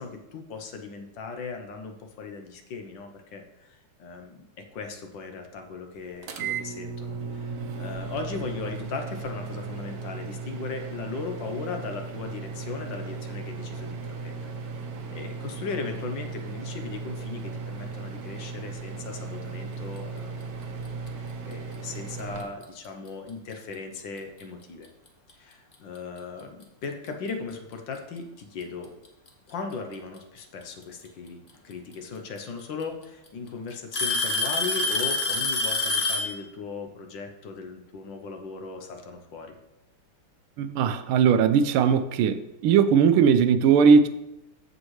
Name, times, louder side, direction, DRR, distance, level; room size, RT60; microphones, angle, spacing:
voice 1, 0.0-4.4 4.7-14.5 15.1-20.6 21.1-24.9 25.4-28.9 29.5-31.4 31.6-39.6, left 4 dB, 65° left, 1.5 m, -38 dB
sound 1, 6.2-22.4, right 4 dB, 60° right, 1.1 m, -36 dB
Alarm / Tick-tock, 22.4-22.6 23.5-23.6 24.4-24.5 26.2-26.3 27.5-27.6 28.8-29.3 31.0-31.1 32.4-32.5 32.8-33.3 33.9-36.4, left 3 dB, 40° left, 0.8 m, -26 dB
voice 2, 40.6-42.4 42.6-44.1, right 6 dB, 85° right, 1.5 m, -19 dB
14.0 x 5.3 x 3.2 m
omnidirectional pair, 2.3 m